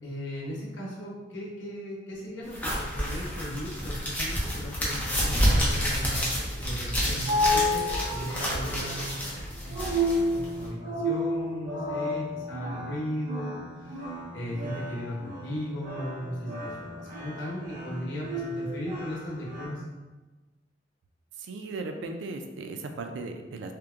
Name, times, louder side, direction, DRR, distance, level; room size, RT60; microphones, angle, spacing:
voice 1, 0.0-19.8, equal, 80° left, -4 dB, 0.7 m, -37 dB
sound 1, 2.5-10.7, equal, 10° left, 0.5 m, -29 dB
sound 2, 6.8-19.7, left 1 dB, 45° right, 0.7 m, -32 dB
voice 2, 21.4-23.7, right 3 dB, 75° right, 5 dB, 0.3 m, -37 dB
2.8 x 2.1 x 2.3 m, 1.2 s
head